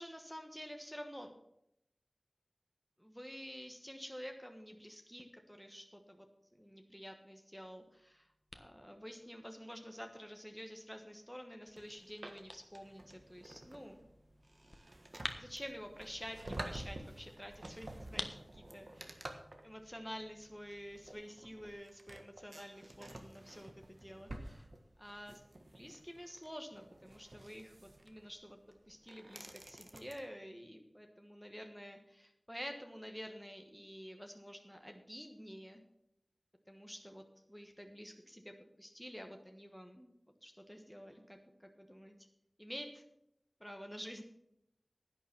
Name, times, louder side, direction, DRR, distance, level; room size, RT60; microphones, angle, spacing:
voice 1, 0.0-1.3 3.0-6.3 6.6-8.3 8.5-14.0 15.4-19.3 19.6-24.7 25.0-25.4 25.7-28.6 28.9-35.8 36.7-40.1 40.4-42.1 42.6-43.0 43.6-44.2, equal, ahead, 4 dB, 1.3 m, -49 dB
sound 1, 7.6-21.1, left 1 dB, 40° left, 1.3 m, -53 dB
sound 2, 11.8-30.2, right 1 dB, 55° right, 1.4 m, -51 dB
11.0 x 9.5 x 6.0 m, 0.79 s
wide cardioid pair, 60°, 0 cm